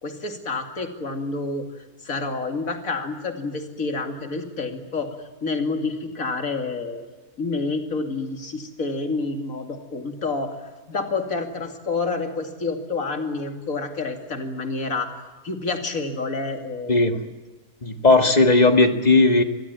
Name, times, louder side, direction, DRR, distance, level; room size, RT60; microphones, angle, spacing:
voice 1, 0.0-1.7 2.0-5.1 5.4-7.0 7.4-10.6 10.9-15.1 15.4-17.0, left 3 dB, 55° left, 5 dB, 2.9 m, -28 dB
voice 2, 16.9-17.2 17.8-19.4, left 2 dB, 25° left, 6 dB, 1.8 m, -16 dB
26.0 x 21.5 x 9.5 m, 1.3 s
omnidirectional pair, 1.7 m